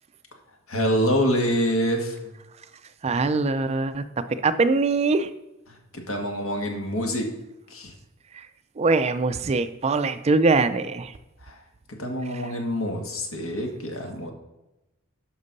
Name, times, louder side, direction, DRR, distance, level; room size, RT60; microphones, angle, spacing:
voice 1, 0.7-2.2 5.9-7.3 7.7-7.9 11.4-11.6 12.0-14.3, equal, 70° left, 2 dB, 1.8 m, -26 dB
voice 2, 3.0-5.3 8.3-8.5 8.8-11.1, right 3 dB, 30° right, 12 dB, 0.4 m, -23 dB
10.5 x 6.1 x 4.0 m, 0.98 s
head